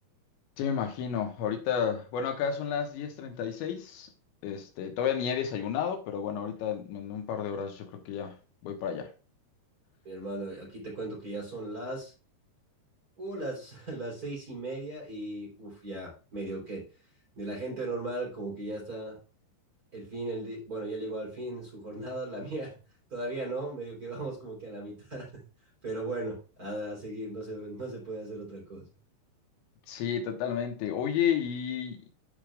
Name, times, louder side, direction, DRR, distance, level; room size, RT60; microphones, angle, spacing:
voice 1, 0.6-4.1 4.4-8.4 8.6-9.1 29.9-32.1, left 8 dB, 90° left, 3.4 m, -31 dB
voice 2, 10.0-12.1 13.2-16.9 17.4-19.2 19.9-22.8 23.1-25.3 25.8-28.9, right 2 dB, 20° right, 3.2 m, -37 dB
14.0 x 5.0 x 2.4 m
omnidirectional pair, 5.2 m